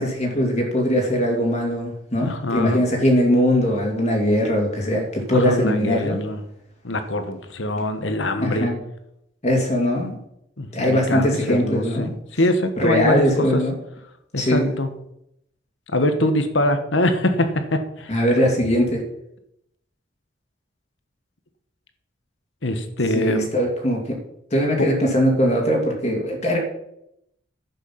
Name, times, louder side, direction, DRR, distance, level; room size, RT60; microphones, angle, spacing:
voice 1, 0.0-6.2 8.4-8.7 9.4-10.2 10.7-12.1 12.8-13.7 14.4-14.7 18.1-19.0 23.1-24.2 24.5-26.6, equal, 35° left, 0 dB, 2.5 m, -21 dB
voice 2, 2.2-2.8 5.3-6.4 6.8-8.7 10.6-13.6 14.3-14.9 15.9-18.2 22.6-23.5 24.8-24.9, left 1 dB, 75° left, 8 dB, 1.5 m, -23 dB
11.0 x 8.2 x 5.9 m, 0.78 s
head